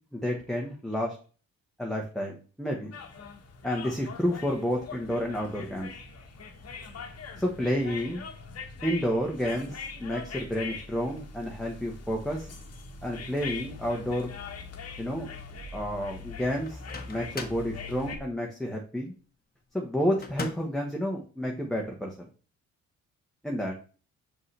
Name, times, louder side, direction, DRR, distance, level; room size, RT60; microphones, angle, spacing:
voice 1, 0.1-1.2 1.8-2.9 3.6-5.9 7.4-8.2 8.8-12.5 13.0-14.3 15.0-15.3 15.7-16.8 17.1-19.1 19.7-22.3 23.4-23.7, equal, ahead, -1 dB, 1.2 m, -30 dB
sound 1, 2.9-18.2, left 4 dB, 55° left, 1.3 m, -42 dB
Microwave oven, 16.6-17.7 20.2-20.8, left 3 dB, 30° left, 1.2 m, -38 dB
5.9 x 5.4 x 3.3 m, 0.38 s
cardioid pair, 90°, 30 cm